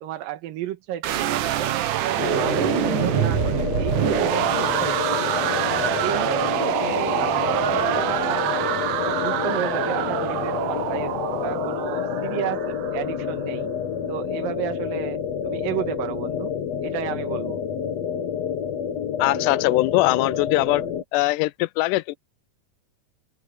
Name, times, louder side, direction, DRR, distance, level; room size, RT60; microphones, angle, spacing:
voice 1, 0.0-5.6 5.9-8.7 9.1-11.1 11.4-13.7 14.1-16.5 16.8-17.6, right 12 dB, 90° right, 2.9 m, -32 dB
sound 1, 1.0-13.1, right 12 dB, 70° right, 2.5 m, -25 dB
sound 2, 2.2-21.0, left 7 dB, 55° left, 2.6 m, -28 dB
voice 2, 19.2-20.8 21.1-22.1, left 19 dB, 80° left, 2.0 m, -21 dB
open air
omnidirectional pair, 3.9 m